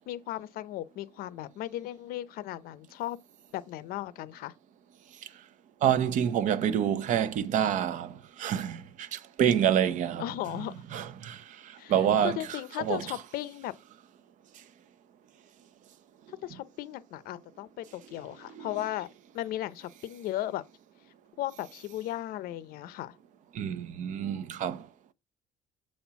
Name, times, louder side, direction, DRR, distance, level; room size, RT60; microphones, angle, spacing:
voice 1, 0.1-3.2 3.5-4.5 10.2-10.7 11.8-11.9 12.2-13.7 16.3-19.1 19.3-20.6 21.4-23.2, left 14 dB, 80° left, 0.7 m, -36 dB
voice 2, 5.8-10.2 10.9-13.2 18.5-18.7 23.5-24.9, right 9 dB, 55° right, 0.7 m, -28 dB
7.5 x 4.3 x 5.7 m
cardioid pair, 160°, 15 cm